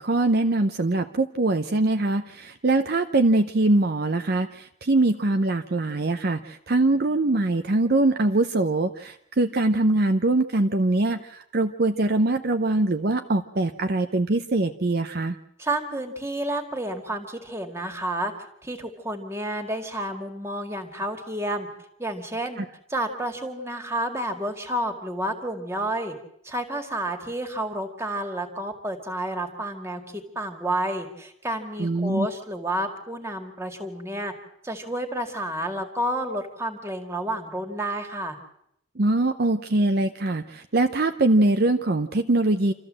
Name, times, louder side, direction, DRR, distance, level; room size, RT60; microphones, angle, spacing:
voice 1, 0.0-15.4 22.6-22.7 31.8-32.3 39.0-42.7, right 2 dB, 50° right, 7 dB, 0.7 m, -23 dB
voice 2, 15.6-18.3 18.6-21.7 22.0-22.6 22.9-26.1 26.4-34.3 34.6-38.4, right 1 dB, 15° right, 5 dB, 2.0 m, -30 dB
27.5 x 14.0 x 7.6 m, 0.76 s
head